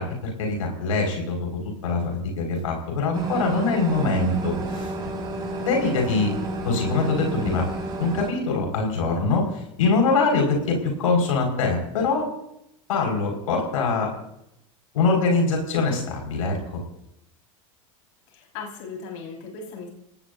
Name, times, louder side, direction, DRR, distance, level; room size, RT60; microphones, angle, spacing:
voice 1, 0.0-1.5 1.8-4.9 5.6-6.3 6.6-7.7 8.0-9.4 9.8-12.3 12.9-14.1 14.9-16.8, left 3 dB, 85° left, 1 dB, 5.1 m, -23 dB
sound 1, 3.1-8.3, right 3 dB, 25° right, 6.4 m, -30 dB
voice 2, 18.3-19.9, left 5 dB, 65° left, -1 dB, 4.8 m, -37 dB
28.5 x 18.0 x 2.7 m, 0.81 s
supercardioid pair, 115°, 17 cm